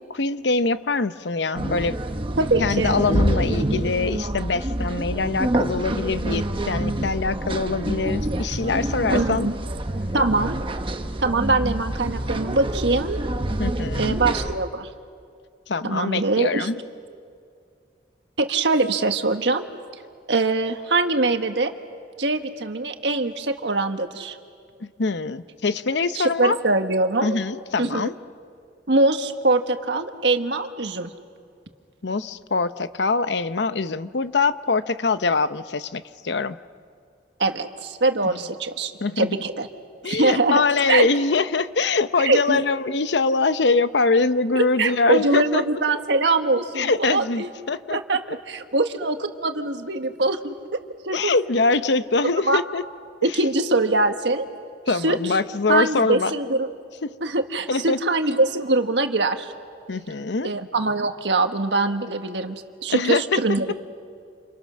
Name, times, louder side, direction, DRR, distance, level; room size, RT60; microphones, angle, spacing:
voice 1, 0.0-2.0 2.6-9.5 13.6-14.2 15.7-16.8 24.8-26.6 27.2-28.1 32.0-36.6 39.0-39.3 40.0-45.6 46.8-48.0 51.1-52.8 54.9-56.3 57.0-57.2 57.7-58.0 59.9-60.5 62.9-63.4, left 3 dB, 75° left, 13 dB, 0.8 m, -23 dB
sound 1, 1.5-14.5, right 1 dB, 30° right, 1.0 m, -27 dB
voice 2, 2.4-3.0 9.1-9.6 10.1-10.5 11.2-13.2 14.0-14.9 15.8-16.7 18.4-19.6 20.3-21.7 22.2-24.4 26.1-27.4 27.8-28.1 28.9-31.1 37.4-39.7 40.0-40.6 40.9-41.1 42.2-42.6 44.5-47.5 47.9-50.5 51.0-51.3 52.4-52.6 53.2-54.5 54.9-55.4 55.7-56.7 57.2-59.5 60.4-63.7, right 2 dB, 80° right, 7 dB, 1.5 m, -23 dB
29.0 x 29.0 x 6.4 m, 2.3 s
head